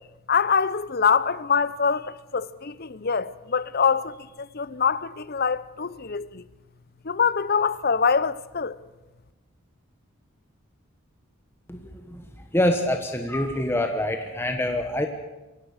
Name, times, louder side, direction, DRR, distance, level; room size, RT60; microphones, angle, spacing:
voice 1, 0.3-6.4 7.0-8.8, left 6 dB, 45° left, 0.7 m, -24 dB
voice 2, 11.7-12.2 12.5-15.1, left 1 dB, 10° left, 1.2 m, -25 dB
23.5 x 17.0 x 6.6 m
head